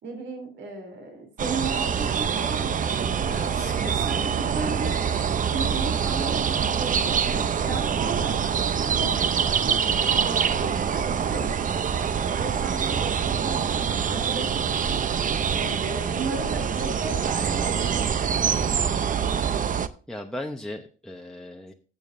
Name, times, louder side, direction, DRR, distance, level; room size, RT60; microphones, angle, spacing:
voice 1, 0.0-5.0 5.5-8.6 8.9-9.8 10.2-11.6 12.1-15.0 15.5-19.2, right 3 dB, 70° right, 3 dB, 3.4 m, -36 dB
sound 1, 1.4-19.9, right 7 dB, 40° right, 0.7 m, -25 dB
voice 2, 3.3-4.3 20.1-21.7, left 1 dB, 5° left, 2 dB, 0.8 m, -37 dB
17.5 x 7.1 x 2.6 m, 0.40 s
cardioid pair, 90°, 20 cm